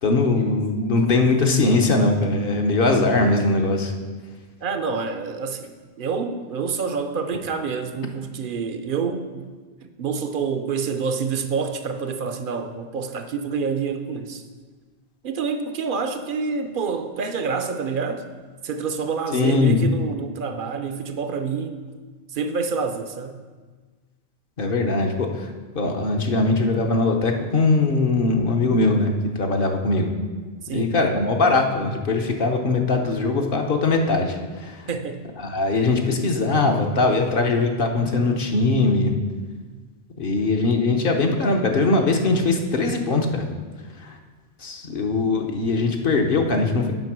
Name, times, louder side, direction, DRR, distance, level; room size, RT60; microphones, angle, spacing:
voice 1, 0.0-3.9 19.3-19.8 24.6-25.5 25.7-30.1 30.7-34.9 35.4-39.1 40.2-43.5 44.0-44.2 44.6-46.9, left 3 dB, 55° left, 3 dB, 1.0 m, -21 dB
voice 2, 4.6-9.5 9.8-14.4 15.2-18.3 18.6-21.8 22.3-23.3 30.6-31.0 34.9-35.2, right 5 dB, 55° right, 8 dB, 0.7 m, -27 dB
7.8 x 5.2 x 6.0 m, 1.4 s
omnidirectional pair, 1.2 m